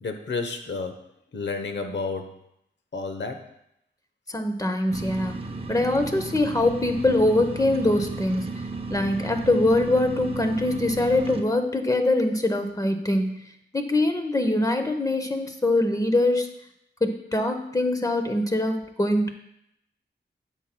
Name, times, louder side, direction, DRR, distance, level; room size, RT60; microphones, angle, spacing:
voice 1, 0.0-2.4 2.9-3.5, left 4 dB, 65° left, 6 dB, 1.0 m, -31 dB
voice 2, 4.3-5.4 5.7-8.5 8.9-13.4 13.7-16.5 17.0-19.3, left 2 dB, 20° left, 6 dB, 0.9 m, -23 dB
sound 1, 4.9-11.4, right 3 dB, 30° right, 0.7 m, -34 dB
9.9 x 7.3 x 2.2 m, 0.77 s
wide cardioid pair, 80°, 19 cm